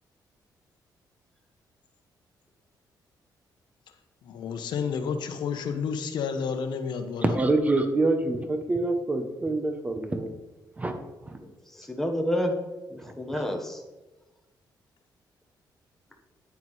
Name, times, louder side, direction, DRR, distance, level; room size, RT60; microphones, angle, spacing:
voice 1, 4.2-7.3, left 6 dB, 75° left, 7 dB, 0.9 m, -30 dB
voice 2, 7.2-10.3 10.8-11.0 11.3-11.4 13.3-13.4, right 2 dB, 20° right, 7 dB, 0.8 m, -26 dB
voice 3, 11.4-12.5 12.9-13.8, equal, 5° left, 2 dB, 1.2 m, -30 dB
9.5 x 9.3 x 3.2 m, 1.1 s
cardioid pair, 150°, 8 cm